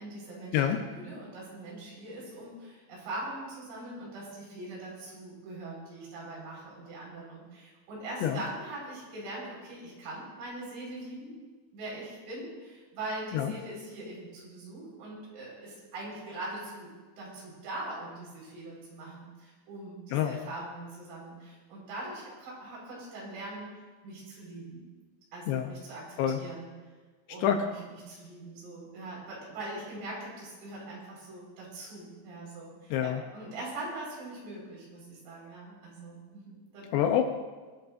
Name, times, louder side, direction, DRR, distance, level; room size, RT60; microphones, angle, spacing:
voice 1, 0.0-0.6 0.9-11.4 11.7-16.9 17.2-23.7 24.0-24.9 25.3-26.7 27.3-37.0, right 2 dB, 85° right, -4 dB, 7.3 m, -42 dB
voice 2, 32.9-33.2 36.9-37.2, left 9 dB, 80° left, 5 dB, 2.8 m, -26 dB
21.5 x 13.5 x 2.6 m, 1.4 s
omnidirectional pair, 5.5 m